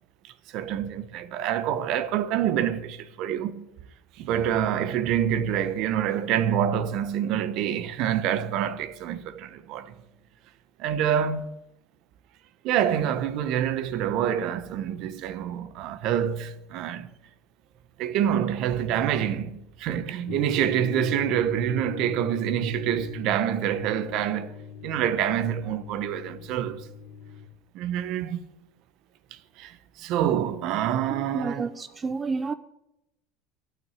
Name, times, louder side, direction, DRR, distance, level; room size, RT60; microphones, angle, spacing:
voice 1, 0.2-3.6 4.2-9.9 10.8-11.5 12.6-17.1 18.0-24.5 24.8-26.9 27.7-28.4 29.3-31.7, right 10 dB, 55° right, 0.9 m, -27 dB
sound 1, 20.3-27.5, left 8 dB, 60° left, 1.4 m, -40 dB
voice 2, 31.2-32.5, right 4 dB, 20° right, 0.5 m, -30 dB
12.5 x 6.0 x 9.0 m
supercardioid pair, 125°, 0 cm